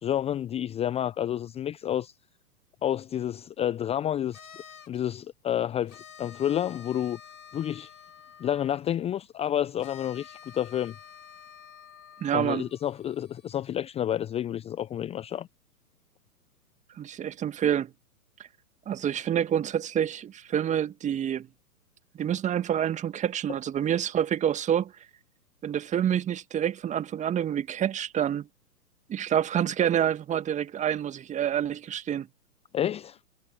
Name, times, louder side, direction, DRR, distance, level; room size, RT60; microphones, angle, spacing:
voice 1, 0.0-2.1 2.8-4.4 4.9-7.2 7.5-7.9 8.4-10.9 12.3-15.5 32.7-33.2, left 10 dB, 15° left, 1.2 m, -29 dB
sound 1, 4.3-5.1 5.9-8.9 9.8-13.7, left 8 dB, 60° left, 6.5 m, -50 dB
voice 2, 12.2-12.6 17.0-17.9 18.9-21.5 22.1-24.9 25.6-28.5 29.1-32.3, right 9 dB, 15° right, 2.1 m, -27 dB
figure-of-eight pair, 115°, 46 cm